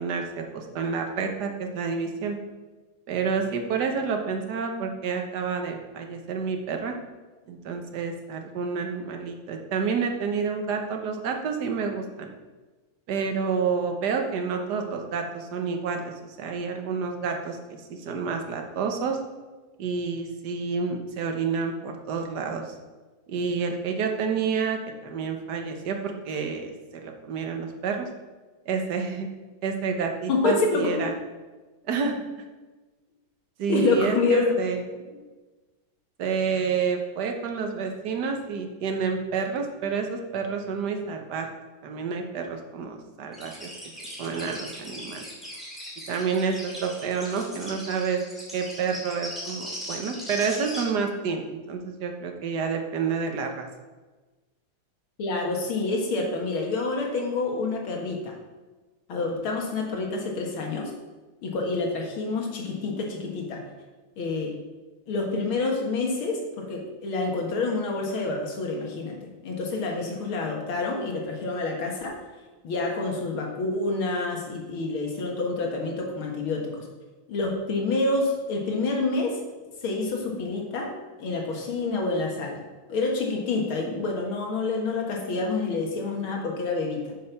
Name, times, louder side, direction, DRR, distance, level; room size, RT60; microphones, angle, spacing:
voice 1, 0.0-2.4 3.1-7.0 7.5-12.3 13.1-19.2 19.8-22.7 23.3-26.7 27.0-28.1 28.6-29.3 29.6-31.1 31.9-32.2 33.6-34.8 36.2-41.5 41.8-43.7 44.2-45.2 46.1-48.2 48.5-53.7, right 5 dB, 60° right, 4 dB, 1.6 m, -29 dB
voice 2, 30.3-30.9 33.7-34.5 34.9-35.0 55.2-58.3 59.1-60.9 61.4-63.6 64.2-64.5 65.1-72.1 72.6-76.9 77.3-80.9 81.2-82.6 82.9-87.1, left 3 dB, 85° left, 0 dB, 2.5 m, -28 dB
sound 1, 43.3-50.8, equal, ahead, 2.7 m, -39 dB
9.2 x 6.6 x 5.8 m, 1.3 s
omnidirectional pair, 2.2 m